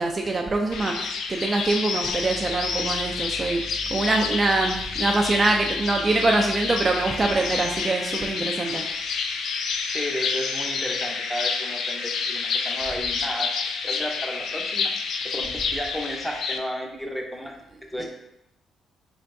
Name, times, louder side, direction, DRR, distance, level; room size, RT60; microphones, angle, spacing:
voice 1, 0.0-3.6 3.9-8.9, right 2 dB, 30° right, 1 dB, 0.3 m, -24 dB
sound 1, 0.7-16.6, left 5 dB, 70° left, 0.3 m, -29 dB
voice 2, 9.9-13.5 13.8-14.9 15.2-17.5 17.9-18.1, equal, 5° left, 1 dB, 0.6 m, -33 dB
3.7 x 3.3 x 2.6 m, 0.84 s
cardioid pair, 100°, 0 cm